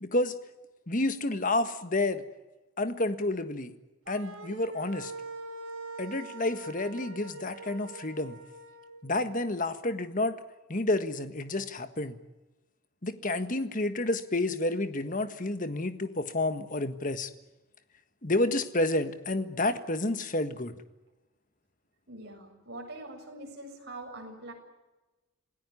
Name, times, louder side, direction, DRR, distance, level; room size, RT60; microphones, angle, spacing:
voice 1, 0.0-0.3 0.9-2.2 2.8-3.7 4.1-5.1 6.0-8.4 9.0-10.4 10.7-12.2 13.0-17.3 18.2-20.7, left 2 dB, 40° left, 10 dB, 1.6 m, -30 dB
sound 1, 4.0-8.9, right 2 dB, 80° right, 4.4 m, -43 dB
voice 2, 22.1-24.5, right 2 dB, 50° right, 1 dB, 7.5 m, -43 dB
27.5 x 17.0 x 9.7 m, 1.1 s
head